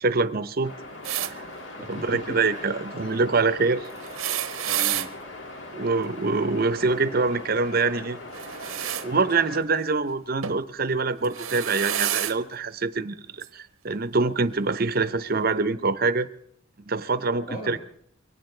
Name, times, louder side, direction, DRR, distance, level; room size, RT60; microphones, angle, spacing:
voice 1, 0.0-0.7 1.3-1.4 1.9-3.9 5.7-8.2 9.0-16.3 16.9-17.8, right 3 dB, 45° right, 13 dB, 0.7 m, -25 dB
sound 1, 0.6-9.6, left 2 dB, 60° left, 2.1 m, -40 dB
sound 2, 1.0-1.3 4.0-5.1 8.3-9.1 10.4-10.6 11.2-12.4 13.4-13.5 14.7-14.8, right 11 dB, 90° right, 0.8 m, -29 dB
voice 2, 1.8-2.8 4.6-5.1 17.5-17.8, equal, 45° left, 0 dB, 1.8 m, -38 dB
23.0 x 18.5 x 3.3 m, 0.68 s
head